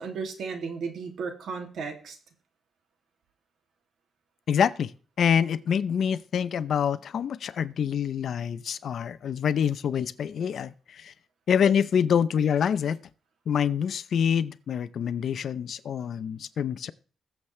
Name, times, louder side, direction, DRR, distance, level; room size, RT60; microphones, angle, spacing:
voice 1, 0.0-2.2, right 5 dB, 70° right, 2.5 m, -34 dB
voice 2, 4.5-4.9 5.2-11.1 11.5-13.0 13.5-16.9, left 8 dB, 60° left, 0.6 m, -26 dB
21.0 x 7.3 x 3.3 m
wide cardioid pair, 150°, 0 cm